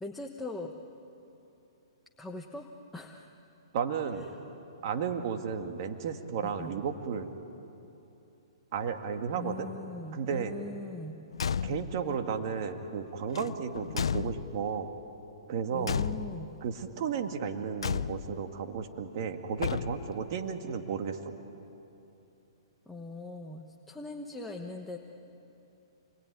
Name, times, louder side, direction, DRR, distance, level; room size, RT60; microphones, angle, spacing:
voice 1, 0.0-0.7 2.2-3.4 6.4-6.7 9.4-11.2 15.7-16.5 22.9-25.0, left 2 dB, 5° left, 0 dB, 1.2 m, -41 dB
voice 2, 3.7-4.3 4.8-7.3 8.7-9.7 10.1-10.5 11.6-14.9 15.5-16.0 16.6-21.3, right 6 dB, 45° right, 5 dB, 2.0 m, -33 dB
Car / Truck / Slam, 11.3-12.1 13.3-14.8 15.8-16.6 17.8-18.5 19.6-20.3, left 7 dB, 80° left, 0.6 m, -33 dB
28.5 x 21.5 x 9.8 m, 2.9 s
hypercardioid pair, 150°, 3 cm